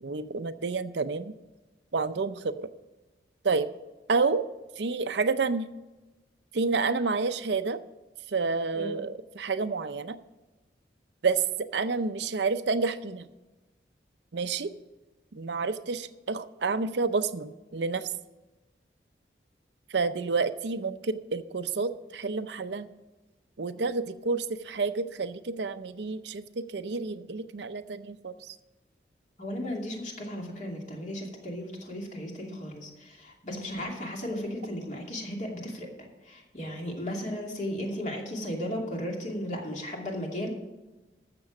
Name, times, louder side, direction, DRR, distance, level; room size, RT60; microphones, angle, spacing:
voice 1, 0.0-1.3 1.9-2.7 3.4-3.7 4.1-4.4 4.8-5.6 6.5-7.8 8.3-10.2 11.2-13.3 14.3-14.7 15.3-18.1 19.9-22.9 23.6-28.6, right 4 dB, 75° right, 11 dB, 0.6 m, -29 dB
voice 2, 29.4-40.6, equal, 40° left, 0 dB, 2.5 m, -35 dB
14.0 x 6.9 x 6.0 m, 1.1 s
head